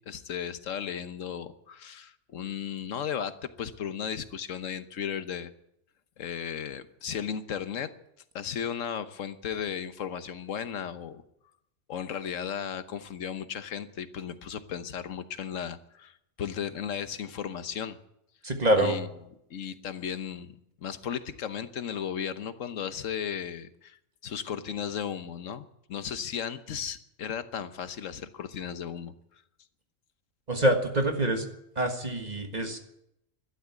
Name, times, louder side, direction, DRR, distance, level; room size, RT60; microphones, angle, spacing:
voice 1, 0.1-3.3 3.6-5.5 6.2-7.9 8.3-11.2 11.9-18.0 18.8-19.1 19.5-20.5 20.8-24.0 24.2-29.1, left 8 dB, 85° left, 11 dB, 1.3 m, -35 dB
voice 2, 18.4-19.0 30.5-31.4 31.8-32.8, right 1 dB, 35° right, 4 dB, 1.7 m, -25 dB
12.5 x 12.0 x 9.3 m, 0.81 s
omnidirectional pair, 1.3 m